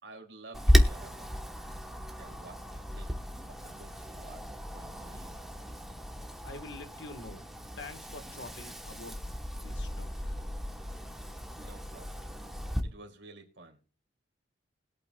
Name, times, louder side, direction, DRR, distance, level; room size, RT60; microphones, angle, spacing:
voice 1, 0.0-1.3 2.2-3.1 3.5-5.3 11.5-12.3 12.8-13.8, right 2 dB, 65° right, 3 dB, 2.6 m, -52 dB
Wind, 0.5-12.8, equal, ahead, 1.0 m, -33 dB
voice 2, 6.4-7.4 7.8-10.4, left 2 dB, 65° left, 9 dB, 1.3 m, -46 dB
21.0 x 8.6 x 2.3 m, 0.32 s
head